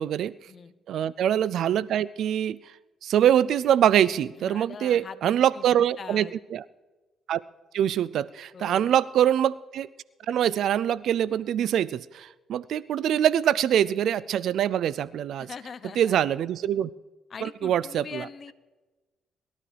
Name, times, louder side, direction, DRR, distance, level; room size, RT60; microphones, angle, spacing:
voice 1, 0.0-0.3 0.9-2.6 3.0-6.6 7.3-7.4 7.7-9.9 10.3-15.5 16.0-16.9 17.4-18.3, right 10 dB, 70° right, 19 dB, 0.3 m, -24 dB
voice 2, 4.4-6.3 8.5-9.0 15.4-16.2 17.3-18.5, left 6 dB, 45° left, 13 dB, 0.8 m, -42 dB
22.5 x 12.5 x 3.4 m, 1.2 s
cardioid pair, 95°, 0 cm